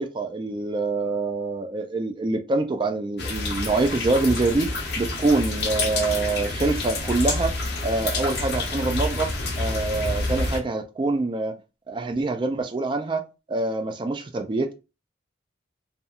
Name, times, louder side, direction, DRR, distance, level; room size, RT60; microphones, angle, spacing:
voice 1, 0.0-7.5 7.8-9.3 9.6-11.5 11.9-13.2 13.5-14.7, right 3 dB, 25° right, 0.3 m, -25 dB
sound 1, 3.2-10.6, left 2 dB, 60° left, 0.7 m, -28 dB
2.8 x 2.3 x 2.4 m
head